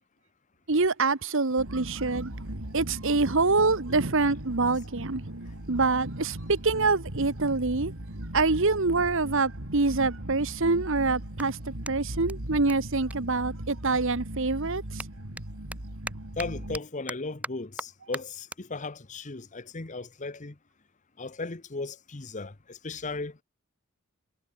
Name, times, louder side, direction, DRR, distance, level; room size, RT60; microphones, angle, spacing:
voice 1, 0.7-2.3 2.7-5.3 5.7-7.9 8.3-15.0, right 3 dB, 60° right, 1.2 m, -26 dB
sound 1, 1.6-16.8, right 1 dB, 75° right, 3.3 m, -38 dB
Clapping, 11.8-14.1 14.4-21.0, right 1 dB, 5° right, 7.0 m, -44 dB
voice 2, 16.4-20.5 21.2-23.4, left 3 dB, 35° left, 1.0 m, -36 dB
head